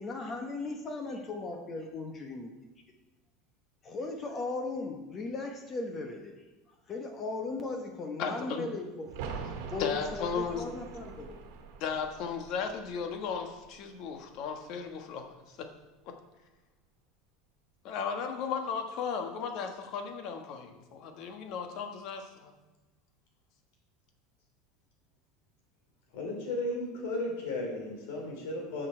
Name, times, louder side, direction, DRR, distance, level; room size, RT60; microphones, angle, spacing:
voice 1, 0.0-2.5 3.8-6.4 6.9-9.2 9.7-11.4, left 3 dB, 25° left, 4 dB, 1.1 m, -37 dB
voice 2, 8.2-8.6 9.8-10.8 11.8-15.7 16.0-16.1 17.8-22.5, left 6 dB, 50° left, 5 dB, 1.4 m, -35 dB
sound 1, 9.1-14.6 14.9-15.0, right 5 dB, 70° right, 1.4 m, -44 dB
voice 3, 26.1-28.9, left 2 dB, 80° left, 0 dB, 3.6 m, -35 dB
12.5 x 6.6 x 4.5 m, 1.1 s
supercardioid pair, 150°, 0 cm